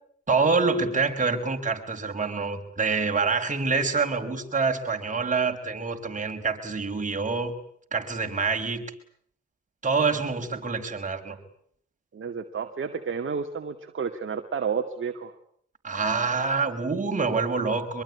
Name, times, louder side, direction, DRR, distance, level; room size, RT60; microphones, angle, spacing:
voice 1, 0.3-7.6 7.9-8.8 9.8-11.4 15.8-18.0, right 4 dB, 25° right, 4 dB, 5.2 m, -26 dB
voice 2, 12.1-15.3, right 6 dB, 40° right, 6 dB, 2.2 m, -31 dB
25.0 x 23.0 x 9.8 m, 0.67 s
cardioid pair, 90°, 30 cm